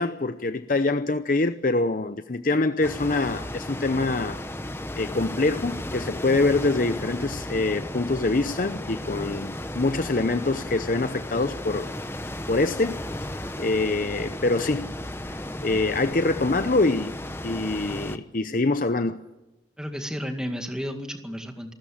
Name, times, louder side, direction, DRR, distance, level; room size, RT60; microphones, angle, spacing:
voice 1, 0.0-4.4 5.0-11.9 12.5-13.0 13.6-14.9 15.3-17.1 17.4-19.2, left 2 dB, 50° left, 0.7 m, -25 dB
sound 1, 2.8-18.2, left 1 dB, 15° left, 0.9 m, -34 dB
voice 2, 19.8-21.7, equal, 5° right, 2.1 m, -32 dB
27.5 x 13.5 x 8.8 m
head